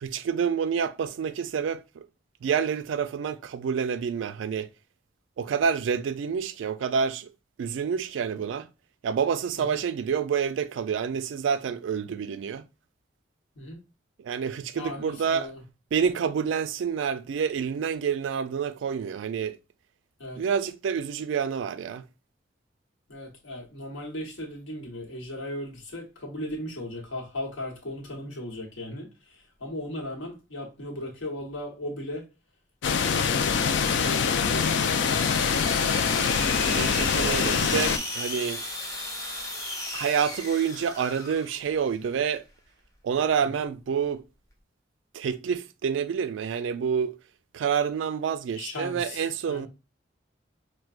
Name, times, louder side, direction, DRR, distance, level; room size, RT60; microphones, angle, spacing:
voice 1, 0.0-2.1 2.4-4.7 5.4-7.3 7.6-8.7 9.0-12.7 14.2-15.5 15.9-19.6 20.4-22.0 36.7-38.6 39.9-42.4 43.0-44.2 45.1-47.2 47.5-49.7, right 7 dB, 85° right, 0.3 m, -28 dB
voice 2, 14.7-15.6 20.2-20.4 23.1-32.3 33.1-35.5 43.4-43.6 48.6-49.7, left 1 dB, 90° left, 1.1 m, -37 dB
sound 1, 32.8-38.0, left 6 dB, 75° left, 0.4 m, -24 dB
sound 2, 34.8-41.8, left 1 dB, 15° left, 0.6 m, -35 dB
4.4 x 2.1 x 2.4 m
head